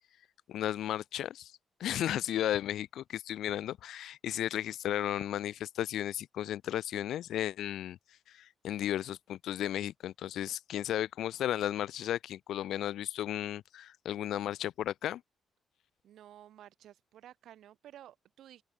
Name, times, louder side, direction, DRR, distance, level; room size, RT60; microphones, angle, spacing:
voice 1, 0.5-1.5 1.8-8.0 8.3-15.2, left 12 dB, 80° left, 1.0 m, -34 dB
voice 2, 16.0-18.6, right 11 dB, 75° right, 4.5 m, -53 dB
open air
cardioid pair, 135°, 0 cm